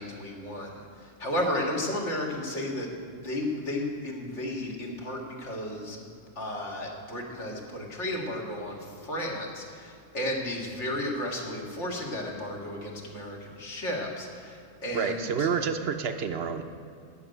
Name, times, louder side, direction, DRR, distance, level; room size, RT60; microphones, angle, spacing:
voice 1, 0.0-15.5, left 1 dB, 65° left, -1 dB, 2.2 m, -33 dB
voice 2, 14.9-16.6, right 6 dB, 60° right, 8 dB, 0.8 m, -28 dB
13.0 x 6.6 x 9.1 m, 2.5 s
omnidirectional pair, 1.3 m